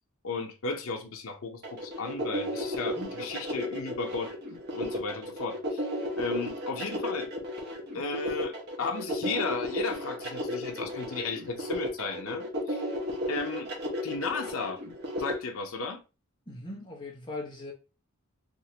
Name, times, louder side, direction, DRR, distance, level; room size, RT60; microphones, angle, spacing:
voice 1, 0.2-4.3 4.7-5.9 6.2-7.3 7.9-12.8 13.3-13.7 14.0-14.8 15.2-16.0, left 4 dB, 75° left, 0.7 m, -34 dB
sound 1, 1.6-15.3, equal, 55° right, 1.2 m, -34 dB
voice 2, 16.5-17.7, left 2 dB, 25° left, 1.2 m, -39 dB
3.6 x 2.9 x 2.8 m
head